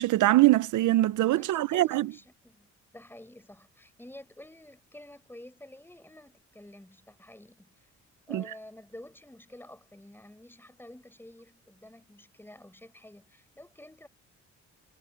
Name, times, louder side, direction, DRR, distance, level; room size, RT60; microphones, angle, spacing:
voice 1, 0.0-2.1 8.3-8.4, right 16 dB, 80° right, 0.9 m, -23 dB
voice 2, 1.4-7.9 8.3-14.1, left 1 dB, 5° left, 5.6 m, -50 dB
cardioid pair, 90°, 30 cm